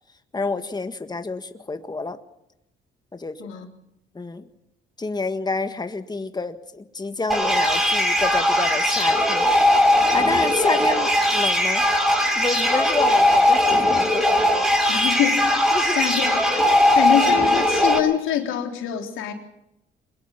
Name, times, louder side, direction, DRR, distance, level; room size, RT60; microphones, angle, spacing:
voice 1, 0.3-2.2 3.1-3.6 4.1-4.4 5.0-9.5 9.9-11.9 12.3-14.2 15.7-16.0, left 3 dB, 20° left, 9 dB, 1.7 m, -29 dB
sound 1, 7.3-18.0, left 1 dB, ahead, 6.8 m, -19 dB
voice 2, 14.9-19.3, left 10 dB, 90° left, 4 dB, 3.6 m, -25 dB
23.5 x 21.0 x 5.9 m, 0.84 s
cardioid pair, 90°, 20 cm